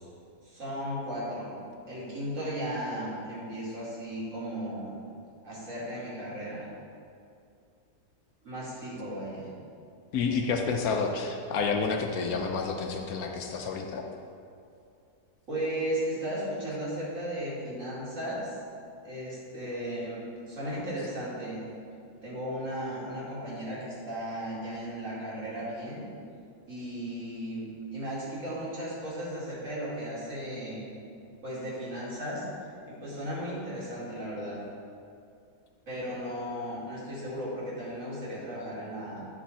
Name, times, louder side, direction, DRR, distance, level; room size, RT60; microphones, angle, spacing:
voice 1, 0.4-1.5 1.9-4.9 5.4-6.7 8.4-9.5 15.5-18.6 19.0-21.6 22.2-26.0 26.7-30.8 31.4-32.4 32.9-34.6 35.9-39.2, equal, 50° right, -8 dB, 2.6 m, -35 dB
voice 2, 10.1-14.0, left 5 dB, 70° left, 3 dB, 1.1 m, -29 dB
9.2 x 5.9 x 4.2 m, 2.4 s
omnidirectional pair, 1.7 m